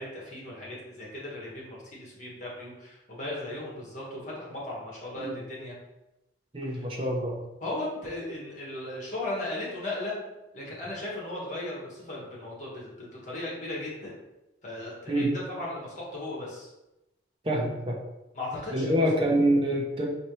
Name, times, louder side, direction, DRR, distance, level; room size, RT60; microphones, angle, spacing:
voice 1, 0.0-5.7 6.7-6.8 7.6-10.1 10.5-14.1 14.6-16.7 18.3-19.0, left 1 dB, 40° left, -5 dB, 1.4 m, -37 dB
voice 2, 6.5-7.4 15.1-15.3 17.4-18.0 18.7-20.1, right 1 dB, 30° right, -1 dB, 0.7 m, -26 dB
4.4 x 2.8 x 3.1 m, 0.96 s
head